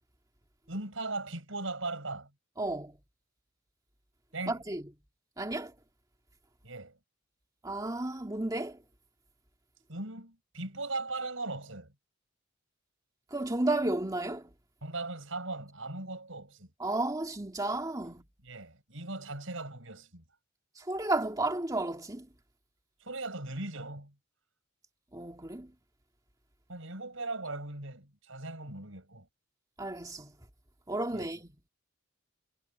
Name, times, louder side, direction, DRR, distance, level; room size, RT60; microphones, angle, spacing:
voice 1, 0.7-2.3 4.3-4.6 6.6-7.0 9.9-11.9 14.8-16.7 18.4-20.2 23.0-24.1 26.7-29.3 31.1-31.3, right 2 dB, 70° right, 6.9 m, -39 dB
voice 2, 2.6-2.9 4.5-4.8 5.4-5.7 7.6-8.8 13.3-14.5 16.8-18.2 20.8-22.3 25.1-25.7 29.8-30.3 30.9-31.5, right 2 dB, 20° right, 2.4 m, -32 dB
head